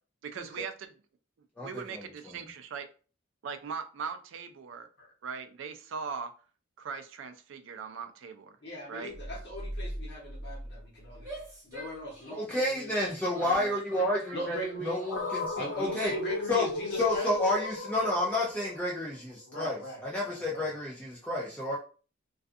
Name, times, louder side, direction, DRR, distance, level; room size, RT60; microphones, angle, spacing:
voice 1, 0.2-0.7 1.6-2.9 3.4-4.9 5.2-6.3 6.8-8.6 8.9-9.1, right 6 dB, 70° right, 9 dB, 0.4 m, -39 dB
voice 2, 1.6-2.3 12.3-16.1 16.5-16.7 17.0-21.8, left 1 dB, 5° left, -4 dB, 0.4 m, -30 dB
voice 3, 8.6-11.3 11.6-12.9 13.4-13.7 14.3-15.0 15.5-17.3 19.5-20.8, equal, 60° left, -3 dB, 0.9 m, -39 dB
sound 1, 9.1-12.1, equal, 45° right, 0.8 m, -41 dB
Female speech woman speaking / Yell, 11.1-15.5, right 1 dB, 15° right, 1.0 m, -47 dB
sound 2, 15.1-19.3, left 3 dB, 75° left, 0.6 m, -36 dB
2.4 x 2.4 x 2.5 m, 0.37 s
head